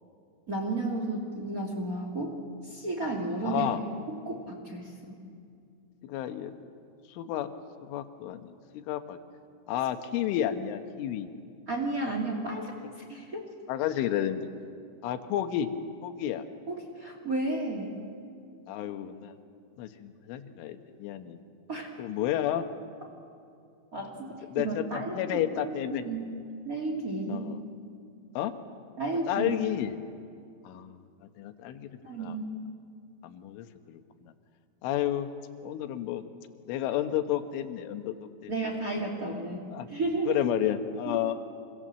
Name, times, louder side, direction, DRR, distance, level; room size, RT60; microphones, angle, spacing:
voice 1, 0.5-2.4 2.6-3.7 4.3-5.2 11.7-12.7 13.1-13.4 16.7-18.0 21.7-21.9 23.9-25.3 25.6-25.7 26.0-26.3 26.6-27.5 29.0-29.5 32.0-32.5 38.5-40.4 41.0-41.2, right 2 dB, 30° right, 1 dB, 1.7 m, -32 dB
voice 2, 3.4-3.8 6.0-6.5 7.1-7.5 7.8-9.2 9.7-11.3 13.7-14.5 15.0-15.7 16.0-16.5 18.7-19.4 19.8-21.4 22.0-22.7 24.5-26.0 27.3-27.6 28.4-28.5 29.3-30.0 30.6-31.0 31.4-31.9 32.2-32.4 33.2-34.3 34.8-35.3 35.6-36.2 36.7-38.5 39.7-39.9 40.3-41.3, left 11 dB, 80° left, 8 dB, 3.6 m, -31 dB
26.5 x 26.0 x 7.6 m, 2.4 s
omnidirectional pair, 5.6 m